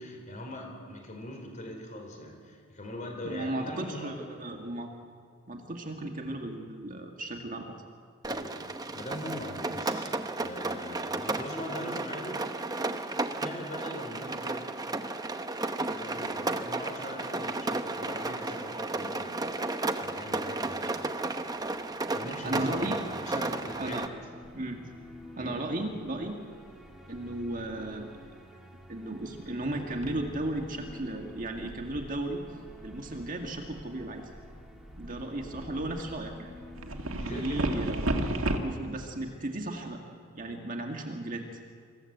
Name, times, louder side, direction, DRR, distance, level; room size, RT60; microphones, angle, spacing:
voice 1, 0.0-4.2 8.3-10.1 10.4-12.5 13.4-14.7 15.9-19.7 20.0-20.9 22.1-22.9 23.2-24.0 25.4-25.6 35.3-35.4 37.1-37.7, left 1 dB, 35° left, 2 dB, 4.5 m, -41 dB
voice 2, 3.2-4.9 5.5-7.7 22.2-23.0 23.8-24.1 24.5-24.8 25.4-26.4 27.1-28.2 28.9-32.4 32.8-34.3 35.0-36.5 37.2-38.0 38.6-40.0 40.3-41.5, right 1 dB, 40° right, 2 dB, 2.0 m, -35 dB
Rain, 8.2-24.1, right 2 dB, 20° right, 0.8 m, -33 dB
sound 1, 21.1-38.1, left 1 dB, ahead, 2.4 m, -51 dB
sound 2, 24.4-24.5 26.7-26.9 27.1-27.9 29.2-29.6 29.9-38.6, right 1 dB, 70° right, 1.8 m, -36 dB
25.5 x 15.5 x 8.0 m, 2.1 s
head